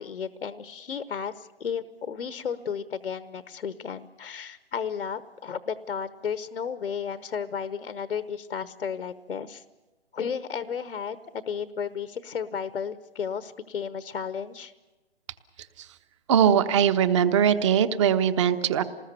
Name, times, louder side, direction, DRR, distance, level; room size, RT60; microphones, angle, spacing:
voice 1, 0.0-9.6 10.1-14.7, left 7 dB, 75° left, 12 dB, 1.1 m, -33 dB
voice 2, 16.3-18.8, right 8 dB, 30° right, 12 dB, 1.1 m, -21 dB
27.5 x 20.0 x 6.9 m, 1.2 s
hypercardioid pair, 150°, 32 cm